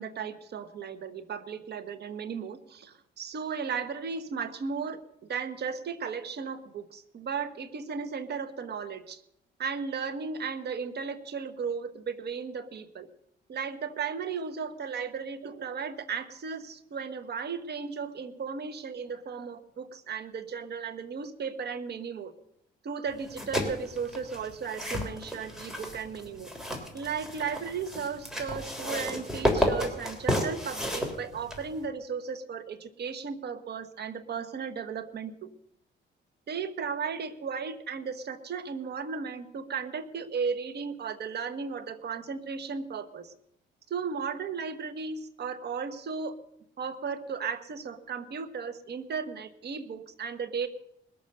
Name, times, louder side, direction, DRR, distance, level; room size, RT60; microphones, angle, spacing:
voice 1, 0.0-5.0 5.3-9.2 9.6-13.1 13.5-22.3 22.8-26.5 26.9-35.5 36.5-43.3 43.9-46.3 46.8-50.7, right 6 dB, 55° right, 9 dB, 1.4 m, -35 dB
sound 1, 23.2-31.8, equal, ahead, 3.3 m, -32 dB
20.5 x 7.1 x 6.6 m, 0.77 s
cardioid pair, 90°, 20 cm